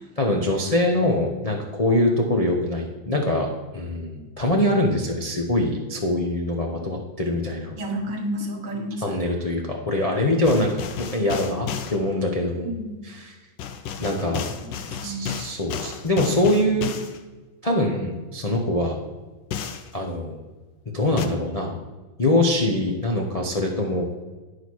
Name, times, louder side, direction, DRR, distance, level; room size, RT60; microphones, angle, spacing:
voice 1, 0.2-7.7 9.0-12.8 13.0-13.4 14.0-14.4 15.0-16.9 17.6-19.0 19.9-20.3 20.9-21.8 22.2-24.0, left 1 dB, 35° left, -1 dB, 0.6 m, -23 dB
voice 2, 7.8-9.2 12.6-13.0 14.9-15.4, right 1 dB, 65° right, 3 dB, 1.9 m, -31 dB
sound 1, 10.4-12.0 13.6-17.2 19.5-19.9 21.2-21.3, left 8 dB, 70° left, 1.4 m, -32 dB
10.0 x 5.0 x 6.2 m, 1.2 s
omnidirectional pair, 2.2 m